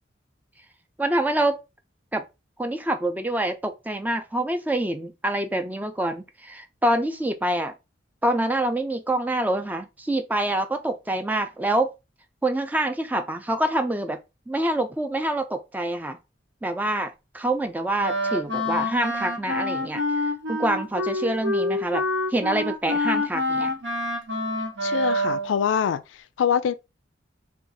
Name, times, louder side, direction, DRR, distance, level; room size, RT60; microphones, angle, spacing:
voice 1, 1.0-1.6 2.1-2.2 2.6-7.7 8.2-11.9 12.4-14.2 14.5-16.2 16.6-20.0 20.5-22.0 22.3-23.7, right 1 dB, 10° right, 0.4 m, -26 dB
Wind instrument woodwind instrument, 18.0-25.5, left 1 dB, 85° right, 1.1 m, -27 dB
voice 2, 24.8-26.0 26.4-26.7, left 8 dB, 85° left, 0.3 m, -23 dB
2.6 x 2.3 x 3.8 m
head